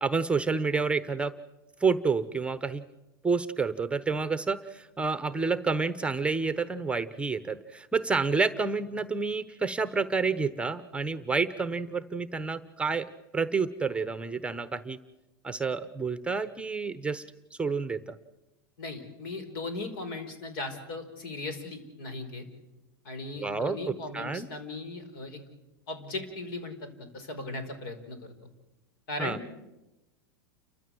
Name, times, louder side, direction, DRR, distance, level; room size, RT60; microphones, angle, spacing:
voice 1, 0.0-1.3 1.8-2.8 3.2-15.0 15.4-17.2 17.6-18.2 23.4-24.5 29.2-29.4, right 4 dB, 10° right, 13 dB, 0.9 m, -29 dB
voice 2, 18.8-22.4 23.0-25.4 25.9-28.2 29.1-29.4, left 2 dB, 65° left, 9 dB, 5.1 m, -37 dB
30.0 x 14.0 x 7.9 m, 0.98 s
hypercardioid pair, 110°, 12 cm